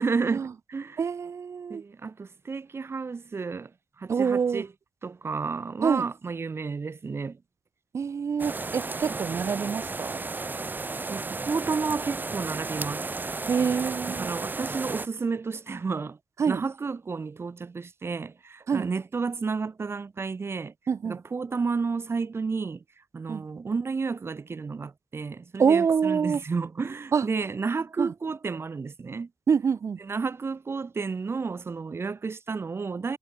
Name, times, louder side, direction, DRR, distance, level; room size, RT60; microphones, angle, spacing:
voice 1, 0.0-1.0 1.7-3.7 4.0-4.7 5.0-7.4 11.1-13.1 14.2-16.2 16.5-20.7 21.1-22.8 23.1-29.3 30.1-33.2, right 4 dB, 55° right, 1.8 m, -31 dB
voice 2, 1.0-1.8 4.1-4.7 5.8-6.1 7.9-10.3 13.5-14.3 16.4-16.6 18.7-18.9 20.9-21.2 23.3-23.5 25.6-26.4 27.1-27.3 28.0-28.1 29.5-30.0, right 6 dB, 75° right, 1.9 m, -26 dB
sound 1, 8.4-15.1, right 3 dB, 40° right, 0.9 m, -33 dB
cardioid pair, 50°, 5 cm